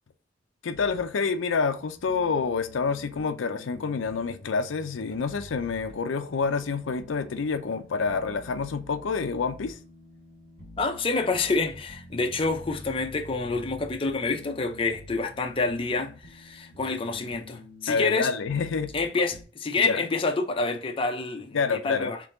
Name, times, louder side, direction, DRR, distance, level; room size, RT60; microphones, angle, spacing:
voice 1, 0.6-9.8 17.9-18.9 19.8-20.0 21.5-22.1, left 5 dB, 90° left, 0.5 m, -28 dB
sound 1, 0.7-19.4, left 1 dB, 35° right, 1.8 m, -48 dB
voice 2, 10.8-18.3 18.9-22.2, left 3 dB, 30° left, 0.5 m, -28 dB
3.5 x 3.3 x 3.8 m
head